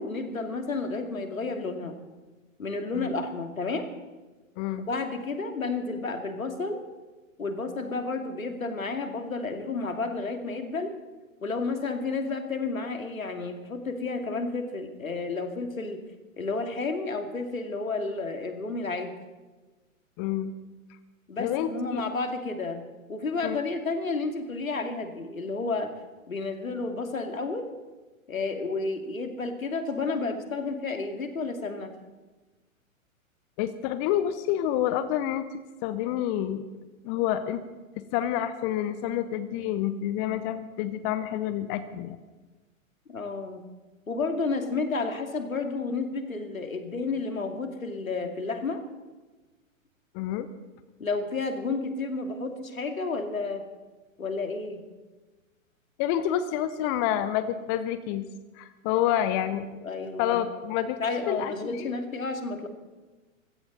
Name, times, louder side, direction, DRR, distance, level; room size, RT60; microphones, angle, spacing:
voice 1, 0.0-1.9 2.6-3.9 4.9-6.8 7.4-10.9 11.4-16.0 16.4-19.1 21.3-22.8 23.1-25.9 26.3-27.7 28.3-31.9 43.1-43.6 44.1-48.8 51.0-53.6 54.2-54.8 59.8-60.4 61.0-62.7, left 3 dB, 75° left, 5 dB, 2.6 m, -31 dB
voice 2, 4.6-4.9 20.2-20.5 21.4-22.0 23.4-23.6 33.6-35.4 35.8-36.7 37.0-37.6 38.0-42.2 50.1-50.5 56.0-58.3 58.6-61.9, left 11 dB, 20° left, 13 dB, 0.6 m, -28 dB
21.5 x 16.0 x 4.0 m, 1.2 s
figure-of-eight pair, 115°, 41 cm